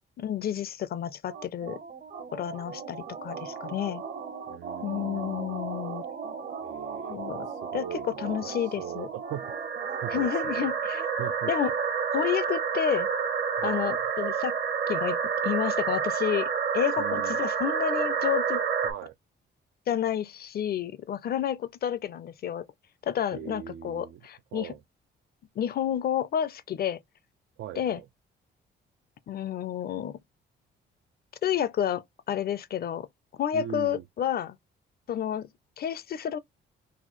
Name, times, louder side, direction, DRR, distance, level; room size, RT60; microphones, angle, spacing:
voice 1, 0.2-1.8 2.3-4.0 4.8-6.0 7.1-7.5 7.7-9.1 10.1-11.0 11.5-11.7 12.1-13.1 13.6-14.6 14.9-15.2 15.4-16.5 16.7-18.6 19.9-22.7 23.0-24.7 25.6-27.0 27.8-28.0 29.3-30.2 31.4-33.1 33.4-34.6 35.1-35.5 35.8-36.4, left 9 dB, 50° left, 0.5 m, -30 dB
sound 1, 1.3-18.9, right 6 dB, 50° right, 0.9 m, -31 dB
voice 2, 4.5-5.6 6.6-9.4 10.0-10.7 11.2-11.5 13.6-14.0 17.0-17.4 18.8-19.1 23.3-24.2 24.5-24.8 27.6-28.1 33.5-34.0, right 11 dB, 70° right, 0.4 m, -40 dB
4.0 x 2.3 x 3.0 m
cardioid pair, 90°, 20 cm